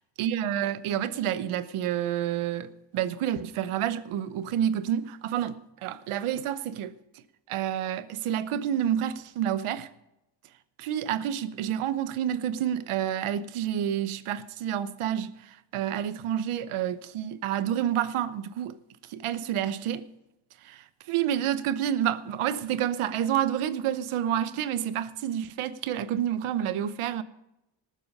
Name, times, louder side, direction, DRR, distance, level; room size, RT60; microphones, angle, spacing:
voice 1, 0.2-6.9 7.5-9.9 10.8-18.8 19.1-20.0 20.6-27.2, right 10 dB, 85° right, 1.0 m, -29 dB
19.0 x 7.7 x 5.4 m
cardioid pair, 120°, 49 cm